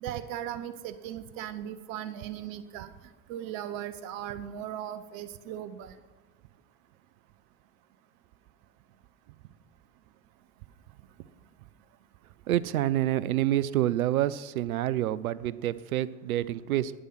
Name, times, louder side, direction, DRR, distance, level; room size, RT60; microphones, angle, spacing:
voice 1, 0.0-2.9 3.3-5.9, right 10 dB, 65° right, 12 dB, 0.9 m, -38 dB
voice 2, 12.5-16.9, right 13 dB, 85° right, 19 dB, 0.6 m, -27 dB
11.5 x 9.9 x 5.8 m, 1.3 s
hypercardioid pair, 75°, 41 cm